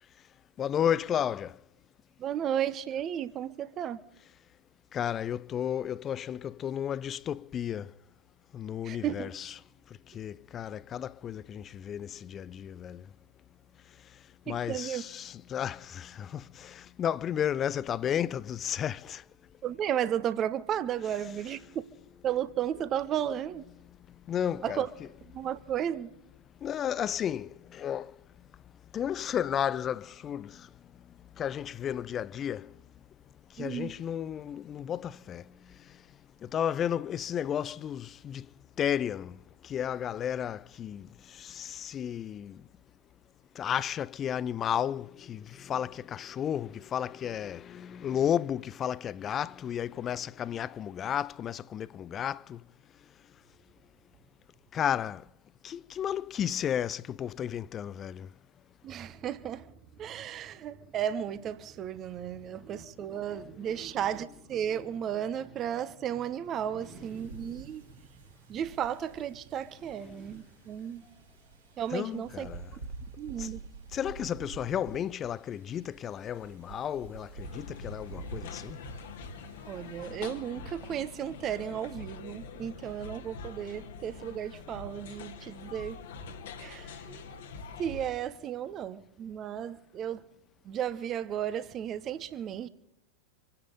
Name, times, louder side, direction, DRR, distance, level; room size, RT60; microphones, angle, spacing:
voice 1, 0.6-1.6 4.9-7.9 8.5-9.4 9.9-13.1 14.5-19.2 24.3-24.8 26.6-28.2 28.9-30.7 31.4-32.8 33.5-36.0 36.4-38.5 38.8-42.7 43.5-52.6 54.7-55.3 55.6-58.3 71.9-72.6 73.4-73.5 73.9-78.8, left 9 dB, 25° left, 0.5 m, -33 dB
voice 2, 2.2-4.0 8.8-9.3 14.5-15.0 19.6-21.6 22.2-23.6 24.6-24.9 25.2-26.1 33.6-33.9 58.8-68.0 68.5-71.0 71.8-72.5 73.2-73.7 79.7-86.0 86.6-87.3 87.8-90.2 90.6-92.7, right 9 dB, 30° right, 1.0 m, -34 dB
Wind, 66.8-80.0, right 4 dB, 70° right, 3.3 m, -48 dB
sound 1, 77.4-88.1, left 5 dB, 55° left, 1.7 m, -44 dB
26.5 x 9.7 x 5.3 m
figure-of-eight pair, 90°, 0 cm